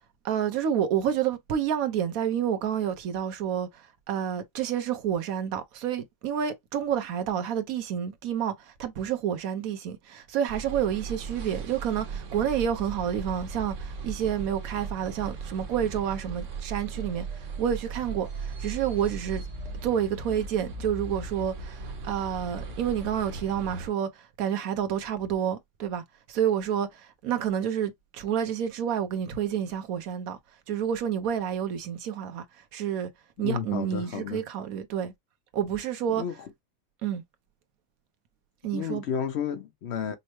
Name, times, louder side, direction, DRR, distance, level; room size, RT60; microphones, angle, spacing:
voice 1, 0.2-19.4 19.8-26.0 26.3-30.4 30.7-33.1 33.4-35.1 35.5-36.2 37.0-37.2 38.6-39.0, right 9 dB, 85° right, 1.2 m, -29 dB
sound 1, 10.5-23.9, right 4 dB, 65° right, 1.2 m, -37 dB
voice 2, 33.4-34.4 36.1-36.5 38.7-40.2, left 8 dB, 60° left, 0.8 m, -32 dB
5.4 x 2.0 x 3.0 m
omnidirectional pair, 1.4 m